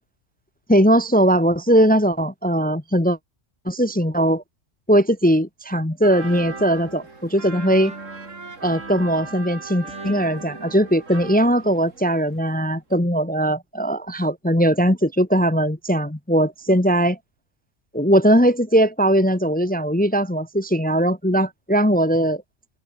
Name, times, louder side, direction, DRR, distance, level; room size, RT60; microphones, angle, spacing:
voice 1, 0.7-3.2 3.7-4.4 4.9-7.9 8.6-17.2 17.9-22.4, equal, 10° left, 0.9 m, -19 dB
sound 1, 6.0-12.6 12.9-13.0, right 3 dB, 85° right, 3.6 m, -37 dB
open air
omnidirectional pair, 1.3 m